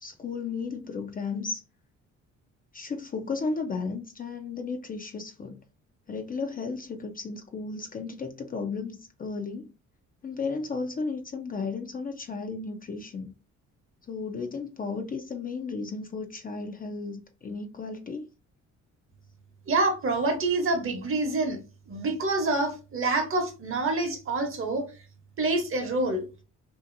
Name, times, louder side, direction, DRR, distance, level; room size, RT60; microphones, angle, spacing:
voice 1, 0.0-1.6 2.7-5.6 6.1-9.7 10.2-13.3 14.1-18.3, left 4 dB, 30° left, 0.4 m, -34 dB
voice 2, 19.7-21.6 21.9-24.8 25.4-26.2, right 2 dB, 45° right, 0.9 m, -26 dB
2.7 x 2.5 x 2.5 m
cardioid pair, 90°, 30 cm